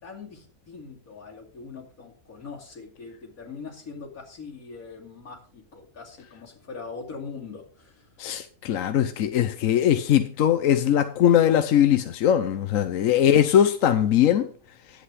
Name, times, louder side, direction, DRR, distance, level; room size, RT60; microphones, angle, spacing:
voice 1, 0.0-8.1, left 4 dB, 90° left, 3.0 m, -42 dB
voice 2, 8.2-14.5, left 10 dB, 75° left, 1.1 m, -20 dB
10.5 x 8.3 x 4.8 m
omnidirectional pair, 1.4 m